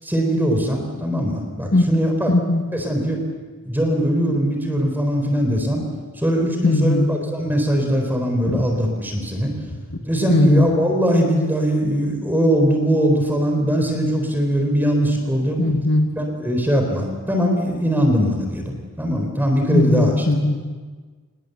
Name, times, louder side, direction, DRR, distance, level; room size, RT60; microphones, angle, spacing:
voice 1, 0.0-2.3 2.7-3.2 3.7-5.8 6.2-9.5 10.1-15.6 16.2-20.3, equal, 10° right, 3 dB, 4.0 m, -21 dB
voice 2, 2.3-2.6 6.6-7.1 8.5-8.6 10.3-10.7 15.6-16.2 19.7-20.6, left 2 dB, 60° left, 3 dB, 1.7 m, -18 dB
26.5 x 21.0 x 8.1 m, 1.4 s
head